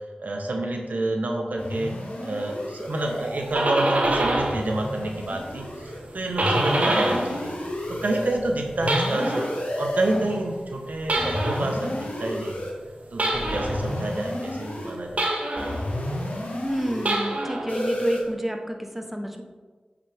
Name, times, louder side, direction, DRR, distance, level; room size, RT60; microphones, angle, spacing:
voice 1, 0.2-1.9 2.2-7.5 7.9-9.5 9.8-12.7 13.1-15.3, right 2 dB, 80° right, 2 dB, 1.2 m, -28 dB
sound 1, 1.6-3.5 4.0-6.0 6.4-8.4 8.8-10.4 11.2-12.7 13.3-15.0 15.6-17.2 17.7-18.2, left 1 dB, 70° left, 1.8 m, -31 dB
sound 2, 3.2-4.7 5.0-7.4 7.7-9.6 11.0-11.8 13.2-13.8 15.2-15.8 16.9-17.7, right 1 dB, 60° right, 1.4 m, -26 dB
voice 2, 16.6-19.4, equal, 5° right, 4 dB, 1.1 m, -29 dB
8.7 x 6.6 x 3.6 m, 1.4 s
cardioid pair, 40°, 3 cm